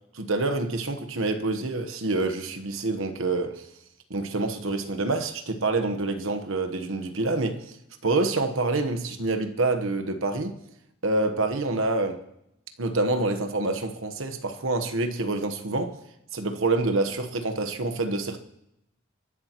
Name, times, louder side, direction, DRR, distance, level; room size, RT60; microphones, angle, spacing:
voice 1, 0.1-3.7 4.1-7.8 8.0-10.5 11.0-12.2 12.8-16.0 16.3-18.4, right 2 dB, 75° right, 1.2 m, -27 dB
30.0 x 11.5 x 3.0 m
head